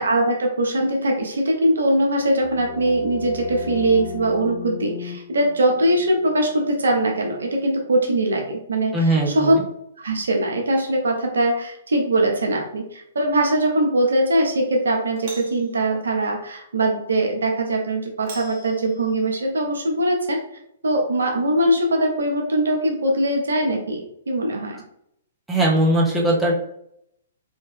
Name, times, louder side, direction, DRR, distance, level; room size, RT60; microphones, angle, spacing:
voice 1, 0.0-9.5 10.0-20.4 20.8-24.8, right 1 dB, 80° right, 1 dB, 0.8 m, -21 dB
sound 1, 2.1-7.7, left 7 dB, 35° left, 0.4 m, -37 dB
voice 2, 8.9-9.6 25.5-26.5, right 1 dB, 5° right, -5 dB, 1.0 m, -19 dB
Doorbell, 12.1-12.6 15.1-15.7 18.2-19.4, right 2 dB, 45° right, 1.0 m, -41 dB
3.3 x 2.8 x 3.3 m, 0.74 s
hypercardioid pair, 125°, 0 cm